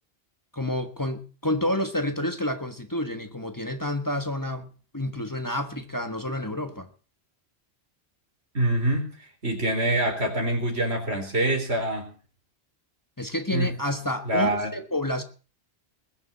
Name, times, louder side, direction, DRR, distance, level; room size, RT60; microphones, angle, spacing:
voice 1, 0.5-4.7 4.9-6.9 13.2-15.2, left 1 dB, 20° left, 1.5 m, -29 dB
voice 2, 8.5-9.1 9.4-12.1 13.5-13.7 14.3-14.7, right 1 dB, 85° right, 4.5 m, -25 dB
21.0 x 7.2 x 7.2 m
omnidirectional pair, 1.1 m